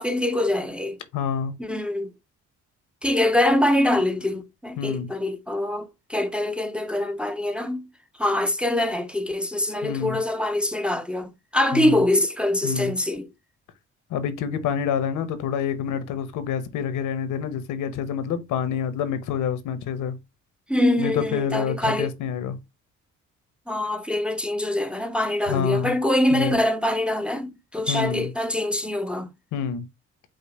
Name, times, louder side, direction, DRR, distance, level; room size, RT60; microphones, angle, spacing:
voice 1, 0.0-1.0 1.6-2.1 3.0-7.9 8.2-13.3 20.7-22.1 23.7-29.3, left 1 dB, 5° right, 0.5 m, -24 dB
voice 2, 1.1-1.6 4.8-5.1 9.8-10.2 11.7-12.0 12.6-12.9 14.1-20.2 21.0-22.6 25.5-25.9 26.3-26.6 27.9-28.3 29.5-29.9, left 7 dB, 85° left, 0.9 m, -27 dB
5.1 x 2.1 x 4.1 m
cardioid pair, 90°, 30 cm